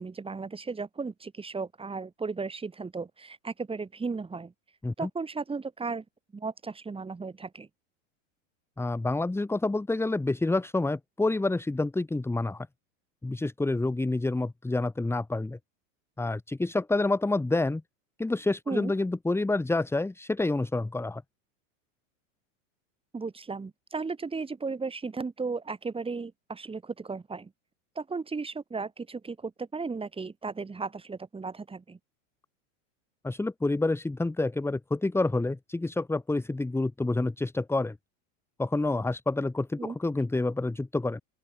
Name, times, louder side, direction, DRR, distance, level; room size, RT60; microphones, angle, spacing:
voice 1, 0.0-4.5 5.0-6.0 6.3-7.7 18.7-18.9 23.1-27.5 28.0-32.0 39.8-40.0, right 4 dB, 15° right, 5.4 m, -35 dB
voice 2, 8.8-12.7 13.2-15.6 16.2-17.8 18.2-21.2 33.2-38.0 38.6-41.2, left 2 dB, 5° left, 2.3 m, -28 dB
open air
supercardioid pair, 125°, 40 cm